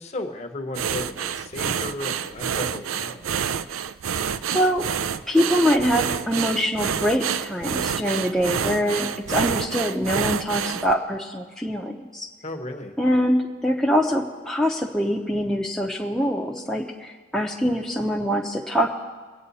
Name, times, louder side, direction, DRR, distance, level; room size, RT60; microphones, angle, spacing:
voice 1, 0.0-3.3 12.4-12.9, left 2 dB, 35° left, 5 dB, 1.0 m, -34 dB
sound 1, 0.7-10.9, right 7 dB, 90° right, 0.5 m, -28 dB
voice 2, 4.2-4.8 5.3-12.3 13.0-18.9, equal, 5° left, -2 dB, 0.7 m, -24 dB
24.0 x 8.7 x 4.1 m, 1.4 s
head